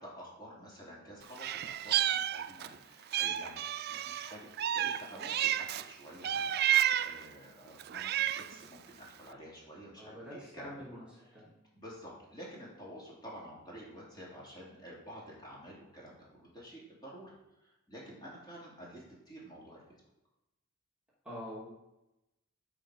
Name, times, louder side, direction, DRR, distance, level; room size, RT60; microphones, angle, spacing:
voice 1, 0.0-6.6 7.0-8.2 8.5-11.4 11.7-17.3 17.6-19.8, equal, 20° left, -5 dB, 2.9 m, -50 dB
Meow, 1.4-2.8 3.1-5.9 6.2-7.2 7.8-8.6, right 11 dB, 50° right, 0.3 m, -31 dB
voice 2, 10.0-11.1 11.3-11.5 21.2-21.7, equal, 5° right, -8 dB, 2.6 m, -45 dB
13.0 x 4.9 x 4.8 m, 0.94 s
head